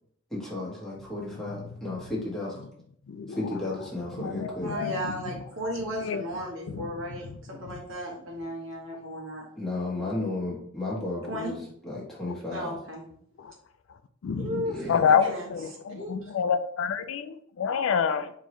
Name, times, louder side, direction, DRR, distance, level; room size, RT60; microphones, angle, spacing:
voice 1, 0.3-2.6 3.3-4.7 9.6-12.8 14.6-15.0, left 2 dB, ahead, -7 dB, 1.3 m, -33 dB
voice 2, 3.1-3.4 4.2-5.2 6.0-6.2 6.7-6.9 13.4-13.5 14.2-18.3, left 6 dB, 70° left, 10 dB, 0.3 m, -27 dB
voice 3, 4.6-9.5 11.3-11.6 12.5-13.0 14.4-15.5 15.9-16.3, equal, 65° right, -1 dB, 1.2 m, -35 dB
4.4 x 3.0 x 3.1 m, 0.66 s
head